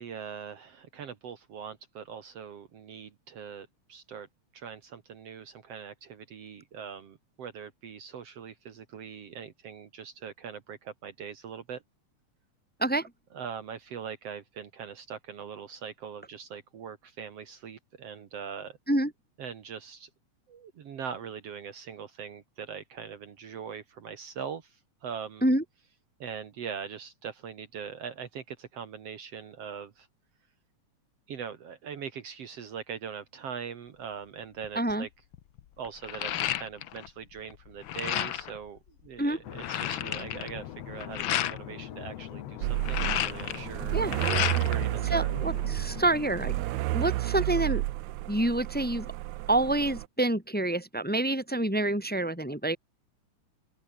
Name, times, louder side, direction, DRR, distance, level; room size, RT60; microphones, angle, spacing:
voice 1, 0.0-4.3 4.5-11.8 13.3-18.8 19.4-20.1 20.5-25.4 26.2-30.1 31.3-35.1 35.8-44.0 44.6-45.3, right 7 dB, 60° right, 2.5 m, -41 dB
voice 2, 12.8-13.1 18.9-19.1 25.4-25.6 34.7-35.1 39.2-39.4 43.9-44.1 45.1-47.8 48.3-49.1 49.5-52.8, right 1 dB, 5° left, 2.5 m, -27 dB
sound 1, 34.6-34.9 35.3-37.1 37.4-38.6 39.1-39.2 39.3-41.6 42.6-44.9 45.2-46.1, left 12 dB, 80° left, 1.1 m, -32 dB
sound 2, 39.4-46.5, left 11 dB, 65° left, 2.2 m, -42 dB
sound 3, 42.6-50.1, right 17 dB, 80° right, 2.0 m, -31 dB
open air
omnidirectional pair, 3.4 m